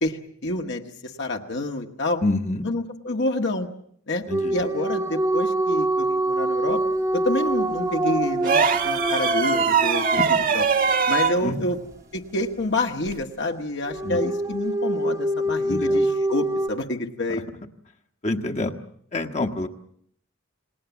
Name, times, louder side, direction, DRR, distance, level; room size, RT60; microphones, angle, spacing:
voice 1, 0.0-2.2 2.6-3.7 4.1-4.2 4.5-6.8 7.1-10.1 10.5-10.6 11.1-11.8 12.1-17.4, left 1 dB, 60° left, 3 dB, 1.6 m, -28 dB
voice 2, 2.2-2.7 4.3-4.6 10.1-10.3 11.4-11.7 14.0-14.2 15.7-16.0 17.3-17.4 18.2-18.8 19.1-19.7, left 2 dB, 35° left, 4 dB, 1.3 m, -27 dB
sound 1, 4.3-11.2 13.9-16.7, right 1 dB, 15° right, 1.0 m, -25 dB
sound 2, 8.4-11.4 13.1-13.2, right 6 dB, 45° right, 1.2 m, -22 dB
28.0 x 19.5 x 7.2 m, 0.66 s
head